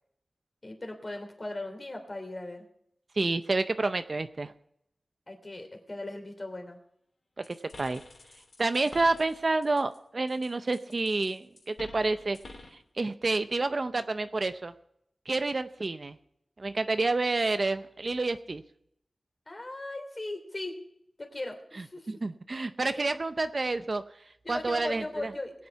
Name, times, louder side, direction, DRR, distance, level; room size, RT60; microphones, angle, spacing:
voice 1, 0.6-2.7 5.3-6.8 19.5-20.7 21.2-22.1 23.0-23.1 24.4-25.5, left 2 dB, 35° left, 4 dB, 3.1 m, -38 dB
voice 2, 3.2-4.5 7.5-8.0 8.6-12.4 12.7-14.7 15.3-16.2 16.6-18.6 22.1-24.0 24.5-25.3, right 3 dB, 45° right, 10 dB, 0.6 m, -29 dB
sound 1, 7.4-10.0 10.3-12.8, left 2 dB, 75° left, 3.1 m, -49 dB
21.0 x 8.6 x 4.6 m, 0.75 s
wide cardioid pair, 85°, 0 cm